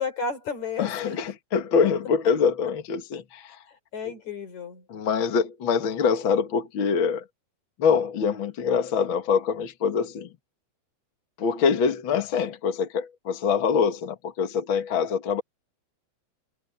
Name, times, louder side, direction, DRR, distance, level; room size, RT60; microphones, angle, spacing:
voice 1, 0.0-1.3 3.9-4.8, left 5 dB, 70° left, 5.7 m, -32 dB
voice 2, 0.8-3.6 4.9-7.3 7.8-10.3 11.4-15.4, left 6 dB, 50° left, 2.0 m, -24 dB
omnidirectional pair, 3.4 m